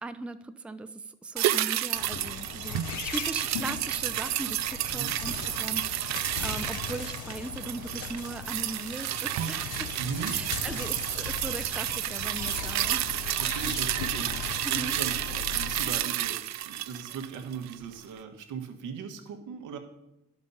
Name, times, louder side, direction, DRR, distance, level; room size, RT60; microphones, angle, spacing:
voice 1, 0.0-9.9 10.3-13.1 14.6-15.0, right 2 dB, 5° right, 10 dB, 0.4 m, -39 dB
sound 1, 1.4-17.9 18.2-18.3, right 13 dB, 65° right, 0.5 m, -31 dB
sound 2, 1.9-16.0, left 8 dB, 80° left, 0.7 m, -39 dB
voice 2, 2.2-3.0 4.9-5.1 10.0-10.4 10.7-10.8 13.4-14.3 14.7-16.4 16.7-19.8, right 6 dB, 85° right, 5 dB, 1.2 m, -39 dB
11.0 x 5.3 x 5.5 m, 0.90 s
cardioid pair, 90°, 30 cm